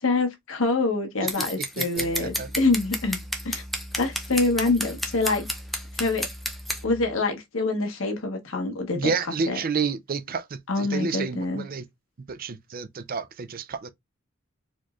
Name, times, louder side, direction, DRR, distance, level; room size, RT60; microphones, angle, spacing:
voice 1, 0.0-3.2 3.4-3.6 4.0-5.5 5.9-6.3 6.8-9.1 9.5-9.6 10.7-11.7, left 3 dB, 90° left, 1.2 m, -25 dB
Scissors, 1.3-6.8, equal, ahead, 0.6 m, -30 dB
voice 2, 1.8-2.5 8.9-11.8 12.3-13.9, right 5 dB, 45° right, 0.5 m, -30 dB
sound 1, 2.0-7.2, equal, 25° right, 1.6 m, -42 dB
4.2 x 3.1 x 2.4 m
head